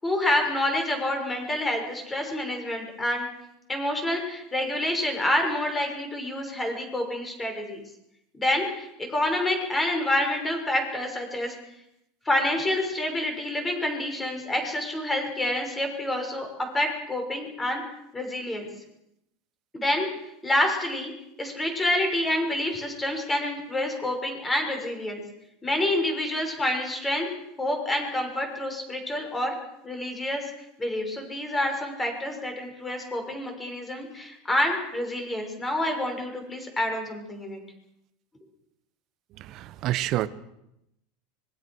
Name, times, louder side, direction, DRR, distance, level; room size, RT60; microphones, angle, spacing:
voice 1, 0.0-3.3 3.7-7.8 8.4-11.5 12.3-16.5 16.7-17.8 18.1-18.7 19.7-20.1 20.4-21.1 21.4-25.2 25.6-27.3 27.6-29.5 29.8-30.4 30.8-37.6, left 1 dB, 10° left, 4 dB, 6.2 m, -27 dB
voice 2, 39.4-40.3, right 14 dB, 40° right, 14 dB, 1.2 m, -28 dB
25.5 x 22.5 x 6.4 m, 0.82 s
supercardioid pair, 150°, 0 cm